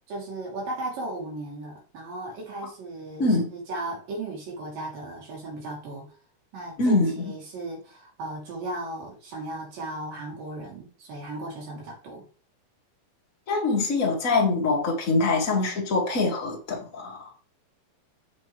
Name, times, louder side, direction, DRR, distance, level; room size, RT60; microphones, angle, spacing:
voice 1, 0.1-6.0 6.5-12.3, right 2 dB, 85° right, 4.5 m, -36 dB
voice 2, 3.2-3.5 6.8-7.3 13.5-17.3, left 3 dB, 30° left, 1.7 m, -24 dB
7.5 x 6.4 x 3.1 m
omnidirectional pair, 3.8 m